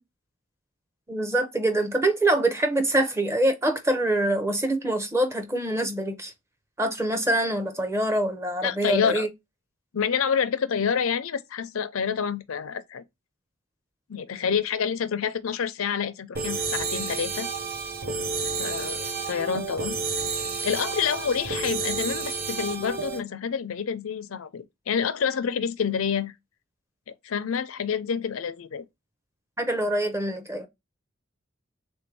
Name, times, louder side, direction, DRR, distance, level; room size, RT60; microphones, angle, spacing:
voice 1, 1.1-6.3 6.8-9.3 29.6-30.7, right 1 dB, 15° right, 0.6 m, -25 dB
voice 2, 8.6-9.3 9.9-13.0 14.1-17.5 18.6-19.9 20.6-26.3 27.2-28.9, left 7 dB, 75° left, 0.5 m, -28 dB
sound 1, 16.4-23.2, right 4 dB, 45° right, 0.8 m, -30 dB
3.5 x 2.6 x 4.6 m
head